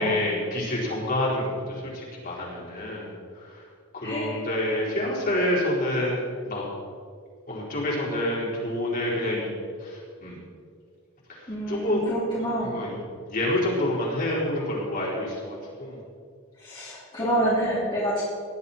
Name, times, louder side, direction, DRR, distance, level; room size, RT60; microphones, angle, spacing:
voice 1, 0.0-3.1 3.9-6.2 6.4-6.7 7.5-9.5 9.8-10.4 11.7-12.0 12.6-12.9 13.3-16.0, left 1 dB, 40° left, -5 dB, 4.5 m, -27 dB
voice 2, 4.0-4.4 11.5-12.7 16.6-18.2, right 1 dB, 20° left, -9 dB, 2.9 m, -27 dB
18.5 x 11.5 x 4.3 m, 2.2 s
head